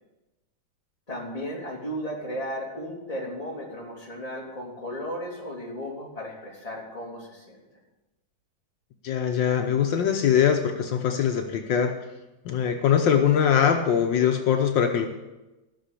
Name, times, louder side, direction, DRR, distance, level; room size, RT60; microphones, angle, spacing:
voice 1, 1.1-7.6, equal, 20° left, -3 dB, 3.1 m, -35 dB
voice 2, 9.0-12.0 12.4-15.1, left 8 dB, 75° left, 4 dB, 1.6 m, -22 dB
15.5 x 6.4 x 8.3 m, 1.0 s
omnidirectional pair, 2.1 m